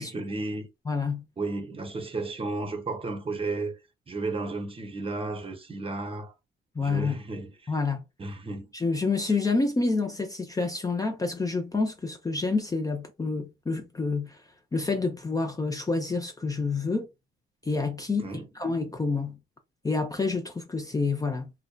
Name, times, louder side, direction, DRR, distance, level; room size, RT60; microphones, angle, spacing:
voice 1, 0.0-0.7 1.4-3.8 4.1-6.3 6.8-7.7 8.2-8.7 18.2-18.5, right 3 dB, 30° right, 0.8 m, -33 dB
voice 2, 0.9-1.2 6.7-7.2 7.7-8.0 8.7-17.1 17.6-18.3 18.6-19.4 19.8-21.5, left 3 dB, 20° left, 0.5 m, -28 dB
2.6 x 2.2 x 2.2 m
cardioid pair, 90°, 20 cm